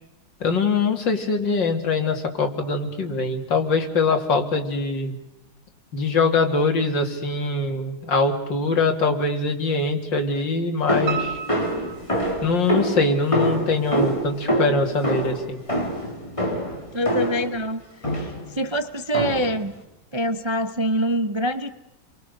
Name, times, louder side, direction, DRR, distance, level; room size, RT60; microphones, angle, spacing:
voice 1, 0.4-5.2 5.9-11.4 12.4-15.6, left 3 dB, 85° left, 5 dB, 3.1 m, -23 dB
sound 1, 10.9-17.5 18.0-18.5 19.1-19.6, right 1 dB, 15° left, 4.1 m, -25 dB
Piano, 11.1-13.0 13.4-14.3 14.6-14.7 15.2-15.3 15.5-15.6, right 7 dB, 70° right, 2.5 m, -33 dB
voice 2, 16.9-17.8 18.1-18.3 18.5-19.7 20.1-21.7, equal, 30° right, 10 dB, 0.5 m, -24 dB
29.5 x 23.0 x 6.7 m, 0.88 s
omnidirectional pair, 1.9 m